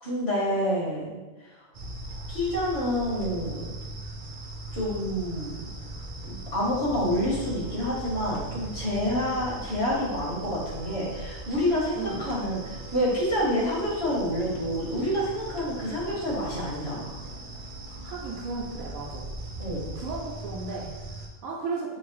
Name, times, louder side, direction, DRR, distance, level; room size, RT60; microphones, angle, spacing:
voice 1, 0.0-1.5 2.3-3.7 4.7-5.6 6.3-17.2 19.6-19.9, equal, 50° left, -6 dB, 1.6 m, -28 dB
sound 1, 1.7-21.3, right 2 dB, 55° right, 0.6 m, -39 dB
voice 2, 18.0-19.3 19.9-22.0, right 4 dB, 85° right, -3 dB, 1.0 m, -35 dB
4.6 x 2.0 x 4.6 m, 1.2 s
omnidirectional pair, 1.4 m